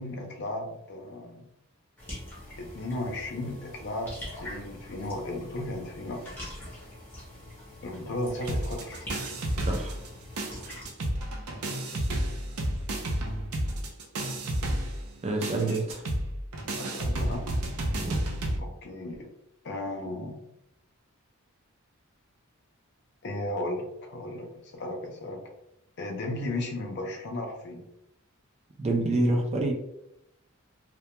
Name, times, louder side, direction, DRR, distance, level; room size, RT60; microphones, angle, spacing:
voice 1, 0.0-1.5 2.6-4.1 4.4-6.3 7.8-9.1 15.6-15.8 16.8-17.5 18.6-19.3 19.6-20.4 23.2-25.4 26.0-27.8, left 1 dB, 50° left, 2 dB, 0.5 m, -35 dB
sound 1, 2.0-10.9, left 1 dB, 10° left, 0.7 m, -43 dB
sound 2, 8.5-10.1 10.4-18.6, right 1 dB, 80° right, 0.5 m, -31 dB
voice 2, 9.7-10.0 15.2-16.0 17.9-18.2 28.8-29.7, right 2 dB, 30° right, 2 dB, 0.3 m, -27 dB
2.2 x 2.2 x 2.8 m, 0.82 s
head